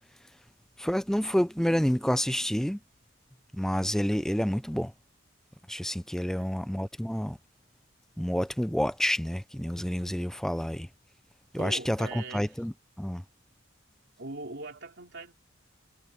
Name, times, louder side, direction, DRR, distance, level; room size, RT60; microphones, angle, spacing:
voice 1, 0.8-2.8 3.5-4.9 5.7-7.4 8.2-10.9 11.5-13.2, equal, ahead, 0.6 m, -29 dB
voice 2, 11.6-12.5 14.2-15.3, right 2 dB, 60° right, 3.5 m, -41 dB
head